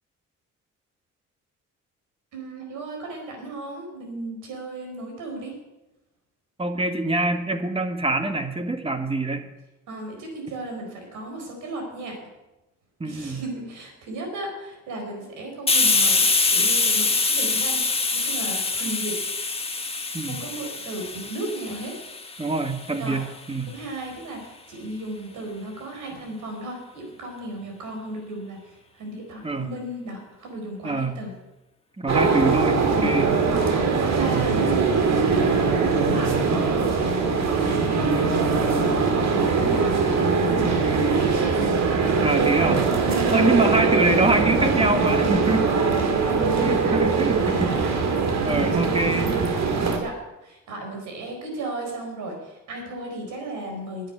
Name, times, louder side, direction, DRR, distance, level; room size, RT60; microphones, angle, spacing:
voice 1, 2.3-5.6 9.9-12.2 13.0-17.8 18.1-19.2 20.2-21.9 22.4-22.5 23.0-23.2 23.7-31.3 32.9-38.1 38.4-41.6 43.0-43.7 45.5-49.4 50.0-54.1, right 1 dB, 80° right, 2 dB, 4.6 m, -35 dB
voice 2, 6.6-9.5 13.0-13.4 20.1-20.4 22.4-23.7 29.4-29.7 30.8-31.1 32.0-33.3 42.2-42.9 43.3-45.7 46.6-47.8 48.4-49.3, right 2 dB, 20° right, 7 dB, 1.5 m, -24 dB
Hiss, 15.7-23.1, left 3 dB, 20° left, 1.5 m, -24 dB
sound 1, 32.1-50.0, right 4 dB, 65° right, 2.2 m, -22 dB
10.0 x 8.5 x 9.0 m, 0.99 s
cardioid pair, 90°, 30 cm